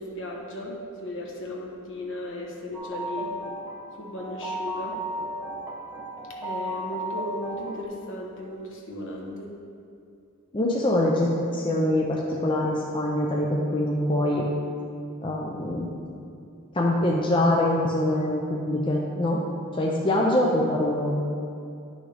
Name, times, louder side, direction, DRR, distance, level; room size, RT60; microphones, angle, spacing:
voice 1, 0.0-3.3 4.0-5.0 6.4-9.5, equal, 60° left, -1 dB, 1.2 m, -36 dB
sound 1, 2.7-7.8, equal, 10° right, 1.0 m, -34 dB
voice 2, 10.5-14.5 15.2-15.9 16.7-19.4 19.7-21.2, left 1 dB, 20° left, -2 dB, 0.6 m, -24 dB
10.0 x 6.3 x 3.4 m, 2.5 s
head